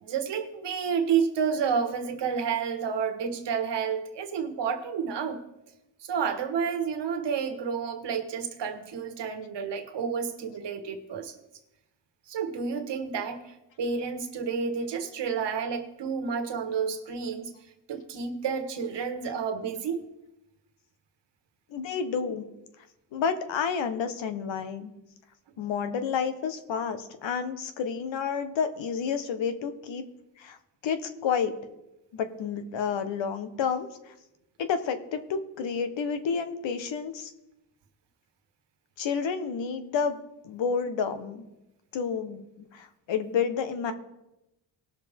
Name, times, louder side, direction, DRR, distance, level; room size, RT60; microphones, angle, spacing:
voice 1, 0.0-5.4 6.0-11.3 12.3-17.5 17.9-20.0, right 6 dB, 65° right, 7 dB, 1.5 m, -30 dB
voice 2, 21.7-22.4 23.1-24.9 25.6-30.0 30.4-30.6 30.8-31.5 32.1-34.1 34.6-37.3 39.0-40.2 40.4-41.4 41.9-42.4 42.7-43.9, left 6 dB, 70° left, 9 dB, 1.2 m, -30 dB
19.0 x 6.7 x 3.6 m, 0.92 s
cardioid pair, 95°, 46 cm